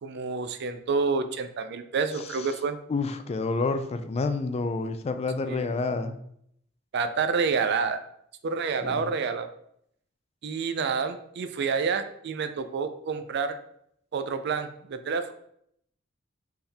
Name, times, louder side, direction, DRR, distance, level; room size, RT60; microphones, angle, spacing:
voice 1, 0.0-2.8 5.4-5.8 6.9-8.0 8.4-9.5 10.4-13.6 14.1-15.3, right 5 dB, 60° right, 10 dB, 0.4 m, -28 dB
voice 2, 2.9-6.2 8.8-9.1, left 3 dB, 30° left, 9 dB, 0.3 m, -29 dB
4.3 x 3.6 x 3.4 m, 0.71 s
head